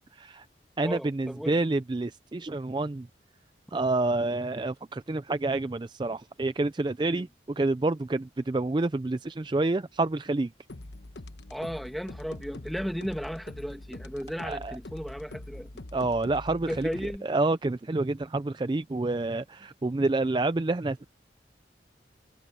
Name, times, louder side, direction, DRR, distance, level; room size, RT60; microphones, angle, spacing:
voice 1, 0.1-0.5 0.8-3.1 3.7-10.5 14.4-14.8 15.9-16.9 17.2-21.1, right 2 dB, 25° right, 0.4 m, -28 dB
voice 2, 0.8-1.6 7.1-7.3 11.5-15.7 16.7-17.3, equal, ahead, 1.5 m, -35 dB
sound 1, 10.7-17.2, left 1 dB, 75° left, 1.1 m, -43 dB
head